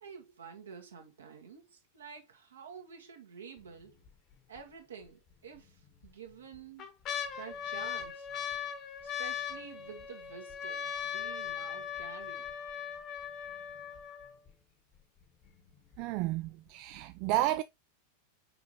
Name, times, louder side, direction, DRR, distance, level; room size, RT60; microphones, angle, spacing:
voice 1, 0.0-4.0 4.5-6.9 7.4-8.3 9.0-12.5, right 6 dB, 70° right, 1.7 m, -49 dB
sound 1, 3.6-4.1 4.6-4.7 5.6-6.1 6.5-14.5 15.2-15.3 15.5-16.0 16.4-16.5, left 8 dB, 35° left, 1.1 m, -39 dB
voice 2, 16.0-17.6, right 15 dB, 45° right, 0.3 m, -31 dB
6.8 x 5.0 x 2.9 m
figure-of-eight pair, 90°, 0 cm